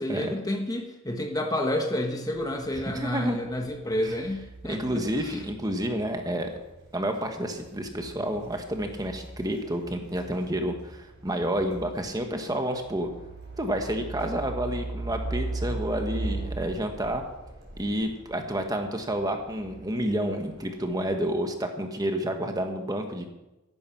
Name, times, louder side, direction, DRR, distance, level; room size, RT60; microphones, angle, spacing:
voice 1, 0.0-5.4, left 1 dB, 15° left, 4 dB, 1.2 m, -30 dB
sound 1, 2.3-21.0, right 2 dB, 60° right, 5.9 m, -40 dB
voice 2, 2.8-3.4 4.0-4.1 4.6-6.5 6.9-13.1 13.6-17.2 17.8-23.3, right 1 dB, 15° right, 4 dB, 1.4 m, -29 dB
14.0 x 11.5 x 5.8 m, 0.98 s
head